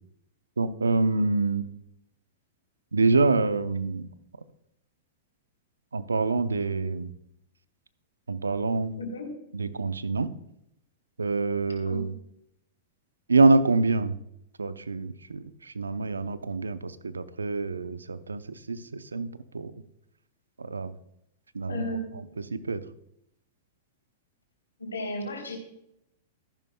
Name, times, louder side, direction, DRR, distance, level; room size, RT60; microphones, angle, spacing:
voice 1, 0.6-1.7 2.9-4.1 5.9-7.1 8.3-8.9 9.5-10.3 11.2-12.1 13.3-14.2 14.6-18.4 18.7-19.7 20.6-20.9 21.5-21.9 22.5-22.8, right 3 dB, 90° right, 13 dB, 0.7 m, -26 dB
voice 2, 9.0-9.3 11.9-12.0 21.7-22.1 24.8-25.6, left 1 dB, 90° left, 3 dB, 3.4 m, -34 dB
13.5 x 11.5 x 2.3 m, 0.77 s
hypercardioid pair, 105°, 0 cm